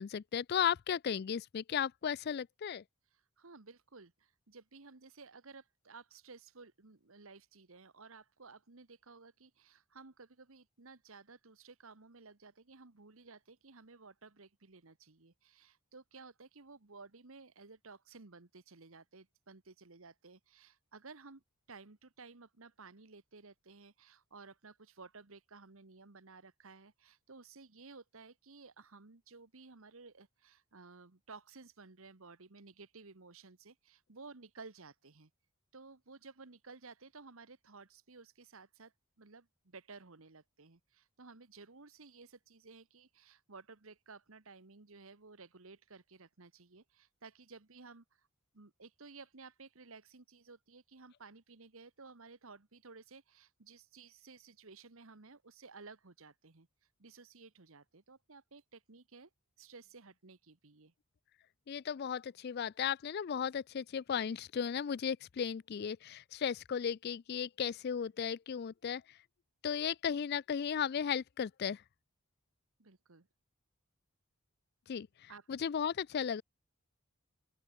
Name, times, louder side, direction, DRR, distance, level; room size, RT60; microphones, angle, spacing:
voice 1, 0.0-2.8 61.7-69.2 69.6-71.8 74.9-76.4, left 7 dB, 45° left, 0.3 m, -35 dB
voice 2, 3.1-21.4 21.7-35.3 35.7-48.3 48.5-56.7 57.0-59.3 59.6-60.9 72.8-73.3 75.3-75.5, right 4 dB, 70° right, 1.4 m, -55 dB
open air
head